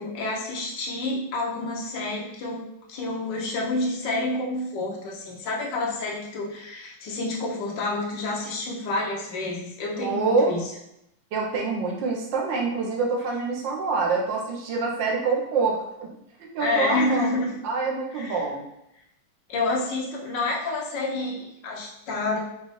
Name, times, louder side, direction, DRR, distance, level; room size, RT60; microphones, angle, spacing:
voice 1, 0.0-2.6 2.9-10.6 16.6-17.5 18.1-18.4 19.5-22.4, left 2 dB, 65° left, -2 dB, 1.4 m, -29 dB
voice 2, 10.0-10.6 11.3-16.1 16.4-17.3 17.6-18.7, right 4 dB, 70° right, -1 dB, 1.4 m, -26 dB
5.2 x 2.3 x 3.1 m, 0.81 s
omnidirectional pair, 2.2 m